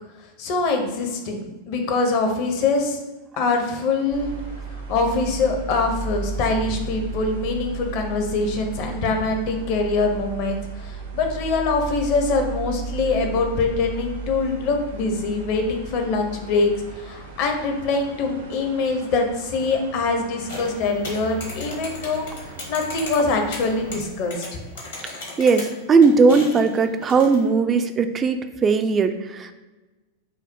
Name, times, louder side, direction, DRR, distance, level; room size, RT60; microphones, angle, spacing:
voice 1, 0.4-3.0 3.4-4.3 4.7-16.7 17.0-24.6, left 3 dB, 45° left, 4 dB, 0.7 m, -24 dB
sound 1, 4.1-24.0, right 4 dB, 70° right, 0.8 m, -35 dB
sound 2, 20.5-27.5, left 2 dB, 60° left, 1.1 m, -37 dB
voice 2, 25.4-29.5, right 4 dB, 20° right, 8 dB, 0.3 m, -18 dB
5.5 x 2.0 x 4.5 m, 1.2 s
figure-of-eight pair, 90°, 0 cm